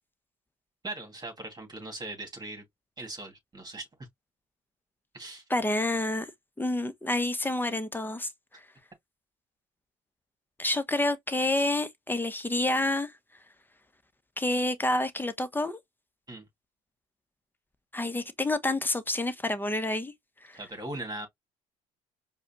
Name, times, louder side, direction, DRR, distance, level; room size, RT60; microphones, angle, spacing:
voice 1, 0.8-2.6 3.0-3.9 5.1-5.4 16.3-16.4 20.5-21.3, right 2 dB, 25° right, 2.2 m, -39 dB
voice 2, 5.5-6.3 6.6-8.3 10.6-13.1 14.4-15.8 17.9-20.1 20.5-20.6, left 2 dB, 10° left, 0.9 m, -28 dB
4.8 x 2.3 x 2.9 m
supercardioid pair, 70°, 17 cm